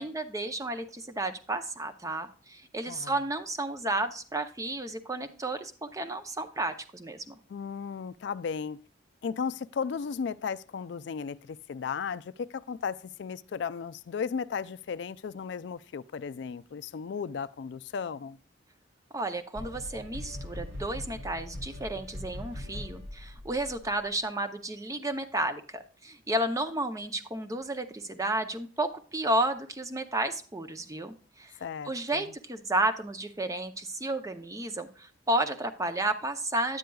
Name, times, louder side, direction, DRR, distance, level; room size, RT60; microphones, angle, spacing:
voice 1, 0.0-7.3 19.1-31.6 31.9-36.8, right 1 dB, 15° right, 0.5 m, -32 dB
voice 2, 2.9-3.2 7.5-8.8 9.2-18.4 31.6-32.3, left 6 dB, 65° left, 0.3 m, -35 dB
sound 1, 19.5-24.0, left 1 dB, 80° right, 3.3 m, -41 dB
9.4 x 9.0 x 2.3 m
head